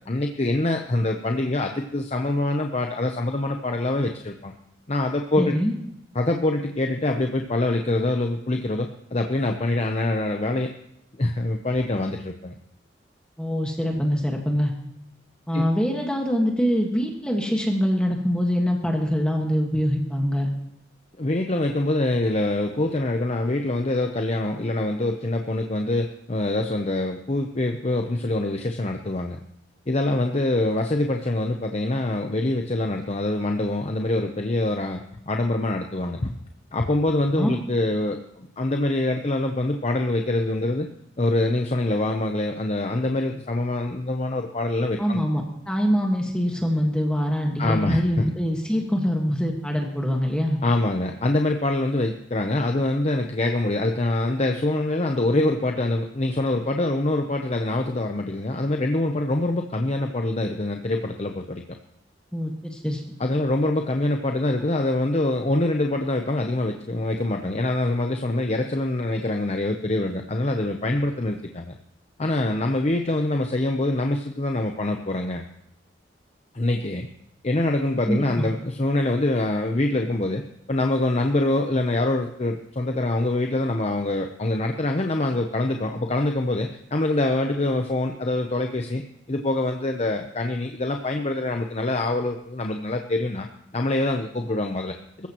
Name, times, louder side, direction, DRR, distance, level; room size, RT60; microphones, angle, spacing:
voice 1, 0.1-4.5 4.9-5.5 6.1-10.7 11.2-12.5 15.5-15.6 21.2-29.4 29.9-36.4 36.7-38.2 38.6-40.9 41.2-45.2 47.6-48.3 50.6-61.6 63.2-71.7 72.2-75.4 76.5-77.1 77.4-80.4 80.7-89.0 89.3-93.5 93.7-95.3, left 2 dB, 35° left, 4 dB, 0.7 m, -25 dB
voice 2, 5.4-5.7 13.4-14.7 15.5-20.5 37.3-37.6 45.0-50.6 62.3-63.0 78.1-78.5, equal, 5° left, 0 dB, 1.6 m, -24 dB
22.5 x 14.0 x 3.0 m, 0.76 s
head